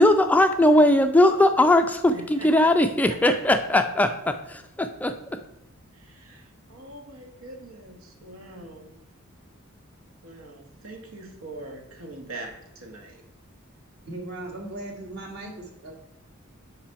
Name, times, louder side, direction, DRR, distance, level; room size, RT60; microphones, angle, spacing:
voice 1, 0.0-5.1, left 1 dB, 5° left, 7 dB, 0.3 m, -19 dB
voice 2, 2.1-2.5 5.9-9.0 10.2-13.2, right 2 dB, 80° right, 3 dB, 1.3 m, -43 dB
voice 3, 14.0-15.9, right 2 dB, 55° right, 1 dB, 1.7 m, -37 dB
5.7 x 4.8 x 5.7 m, 0.90 s
head